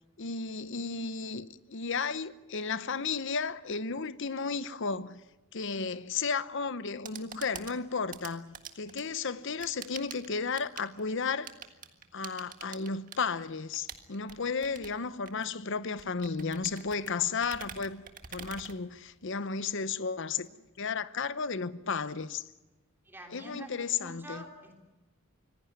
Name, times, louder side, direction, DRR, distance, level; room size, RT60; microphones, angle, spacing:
voice 1, 0.2-5.2 5.5-11.5 12.1-18.0 18.3-20.5 20.8-22.5 23.3-24.4, left 5 dB, 55° left, 0.8 m, -33 dB
sound 1, 6.8-19.4, right 7 dB, 40° right, 1.7 m, -48 dB
voice 2, 23.0-24.8, right 1 dB, 10° right, 3.4 m, -47 dB
25.0 x 17.0 x 9.8 m
head